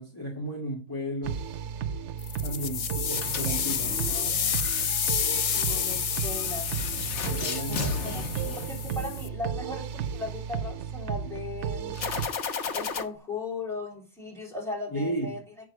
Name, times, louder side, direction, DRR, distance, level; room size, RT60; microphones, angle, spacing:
voice 1, 0.0-1.4 2.4-4.0 7.3-8.6 14.9-15.4, right 1 dB, 20° left, 2.1 m, -34 dB
sound 1, 1.2-12.3, right 8 dB, 90° right, 0.9 m, -34 dB
sound 2, 2.2-9.3, left 7 dB, 60° left, 0.3 m, -30 dB
sound 3, 3.1-9.3 11.9-13.0, left 5 dB, 85° left, 1.3 m, -36 dB
voice 2, 5.5-6.7 7.7-8.2 8.5-12.0 12.7-15.4, left 3 dB, ahead, 3.3 m, -37 dB
8.7 x 6.3 x 4.8 m
omnidirectional pair, 1.2 m